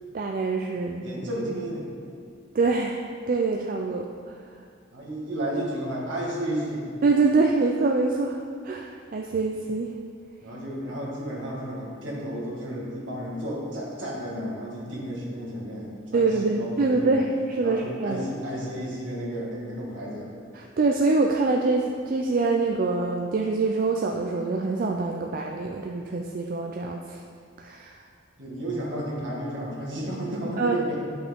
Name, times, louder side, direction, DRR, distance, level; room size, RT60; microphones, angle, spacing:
voice 1, 0.1-1.1 2.5-4.1 7.0-9.9 16.1-18.2 20.5-27.2 27.6-28.0 30.6-30.8, right 3 dB, 45° right, 1 dB, 0.4 m, -25 dB
voice 2, 1.0-1.9 4.9-6.9 10.4-17.2 17.6-20.3 28.4-31.0, right 1 dB, 70° right, -5 dB, 1.8 m, -32 dB
10.5 x 5.5 x 3.6 m, 2.2 s
head